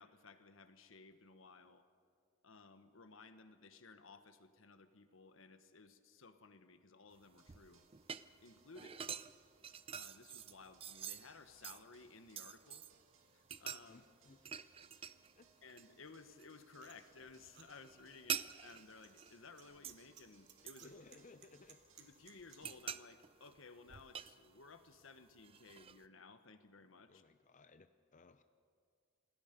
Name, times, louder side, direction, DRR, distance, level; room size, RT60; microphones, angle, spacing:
voice 1, 0.0-1.9 2.4-7.8 8.4-9.0 9.9-12.9 13.3-14.0 15.6-20.9 22.0-27.2, left 4 dB, 80° left, 10 dB, 1.3 m, -58 dB
sound 1, 7.1-13.0 13.4-15.4 15.7-16.5 16.8-20.1 20.7-21.8 22.2-24.9 25.4-26.1, right 8 dB, 30° right, 0.5 m, -47 dB
sound 2, 7.4-22.7, right 5 dB, 80° right, 2.4 m, -71 dB
voice 2, 8.8-9.2 13.9-14.7 15.1-15.7 20.8-21.8 27.1-28.4, left 3 dB, 40° left, 10 dB, 0.6 m, -62 dB
sound 3, 16.8-22.6, right 8 dB, 60° right, 2.2 m, -63 dB
27.0 x 20.0 x 5.3 m, 2.2 s
head